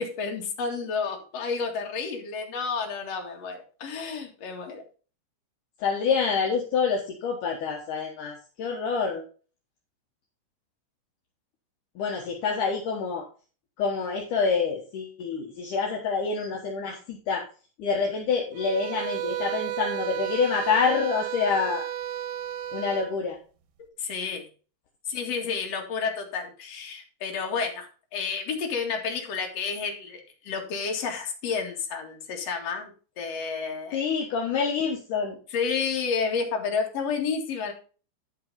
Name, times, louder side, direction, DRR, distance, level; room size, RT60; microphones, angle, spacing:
voice 1, 0.0-4.8 24.0-24.5 25.1-27.9 28.1-34.1 35.5-37.7, left 5 dB, 45° left, 1 dB, 2.4 m, -30 dB
voice 2, 5.8-9.2 12.0-13.3 13.8-17.5 17.8-21.9 22.7-23.4 33.9-35.4, left 5 dB, 65° left, 0 dB, 2.1 m, -27 dB
sound 1, 18.5-23.1, right 12 dB, 85° right, 3.4 m, -33 dB
11.0 x 5.9 x 4.0 m, 0.37 s
omnidirectional pair, 5.2 m